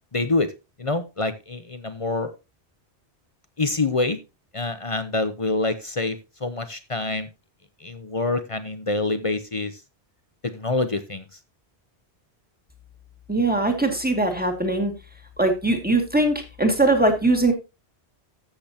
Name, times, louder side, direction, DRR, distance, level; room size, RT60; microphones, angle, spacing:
voice 1, 0.1-0.5 0.8-2.3 3.6-4.2 4.5-7.3 7.8-9.8 10.4-11.3, left 3 dB, 35° left, 10 dB, 0.8 m, -26 dB
voice 2, 13.3-14.9 15.4-17.5, right 2 dB, 10° right, 3 dB, 2.2 m, -21 dB
13.5 x 7.8 x 2.9 m, 0.27 s
omnidirectional pair, 1.1 m